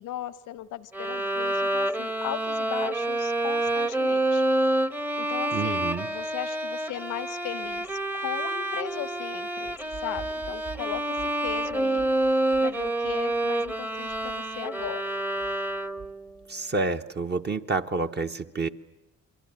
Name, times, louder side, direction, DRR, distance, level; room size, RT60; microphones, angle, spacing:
voice 1, 0.0-4.4 5.2-9.8 10.0-12.0 12.6-15.0, left 13 dB, 85° left, 15 dB, 1.1 m, -37 dB
Bowed string instrument, 0.9-16.2, right 1 dB, 5° right, 0.9 m, -28 dB
voice 2, 5.5-6.1 16.5-18.7, right 3 dB, 35° right, 5 dB, 1.1 m, -29 dB
sound 1, 9.6-16.5, right 6 dB, 70° right, 4.5 m, -48 dB
28.5 x 22.5 x 8.9 m, 0.99 s
cardioid pair, 90°, 30 cm